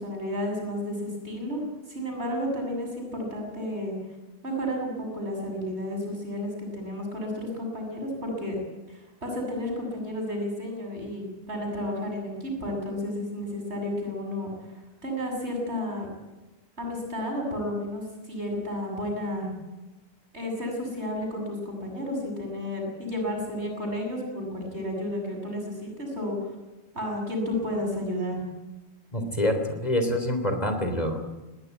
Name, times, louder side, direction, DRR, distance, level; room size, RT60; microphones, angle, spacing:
voice 1, 0.0-1.6 1.9-4.0 4.4-8.6 8.9-14.5 15.0-16.1 16.8-19.5 20.3-26.5 26.9-28.4, left 1 dB, 80° right, 1 dB, 7.6 m, -32 dB
voice 2, 29.1-31.2, left 1 dB, 35° left, 6 dB, 3.6 m, -26 dB
21.5 x 18.0 x 9.4 m, 1.1 s
omnidirectional pair, 1.1 m